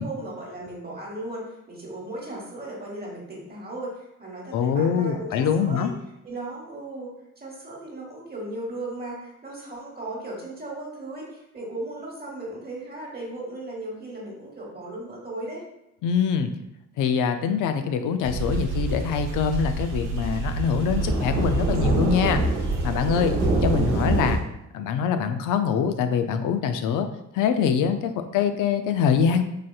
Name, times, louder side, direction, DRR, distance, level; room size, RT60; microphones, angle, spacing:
voice 1, 0.0-5.9 6.2-15.6, right 2 dB, 30° right, -4 dB, 1.2 m, -36 dB
voice 2, 4.5-5.9 16.0-16.5 17.0-22.4 22.8-23.4 23.6-24.4 24.7-27.1 27.3-29.4, left 7 dB, 80° left, 9 dB, 0.5 m, -24 dB
sound 1, 18.2-24.4, right 2 dB, 90° right, 0.8 m, -25 dB
4.8 x 2.7 x 2.3 m, 0.86 s
cardioid pair, 85°, 31 cm